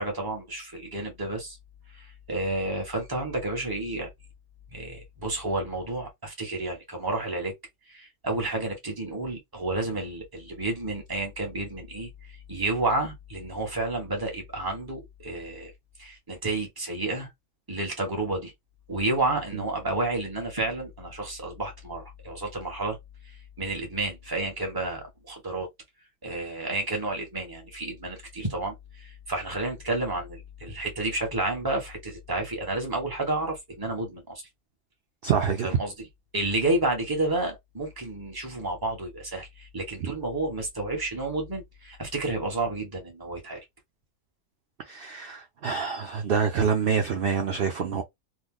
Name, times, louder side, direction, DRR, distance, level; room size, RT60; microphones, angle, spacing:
voice 1, 0.0-1.6 1.9-4.1 4.7-7.5 7.8-15.7 16.0-17.3 17.7-18.5 18.9-23.0 23.2-25.7 26.2-34.4 35.6-36.1 36.3-43.6, right 2 dB, 15° right, 1.0 m, -31 dB
voice 2, 35.2-35.7 40.0-40.1 44.9-48.0, right 6 dB, 55° right, 0.6 m, -26 dB
3.0 x 2.2 x 3.6 m
omnidirectional pair, 1.6 m